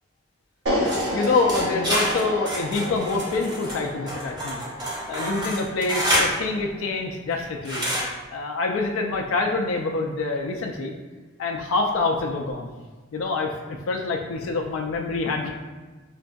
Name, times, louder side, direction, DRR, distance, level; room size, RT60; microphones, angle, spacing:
sound 1, 0.7-6.8, equal, 80° right, 0.9 m, -31 dB
sound 2, 0.9-6.3 7.6-8.1, equal, 20° right, 0.7 m, -27 dB
voice 1, 1.1-4.6 5.1-7.8 8.3-10.9 11.4-12.7 13.1-15.5, left 3 dB, 90° left, 2 dB, 0.4 m, -26 dB
5.2 x 2.3 x 2.5 m, 1.3 s
head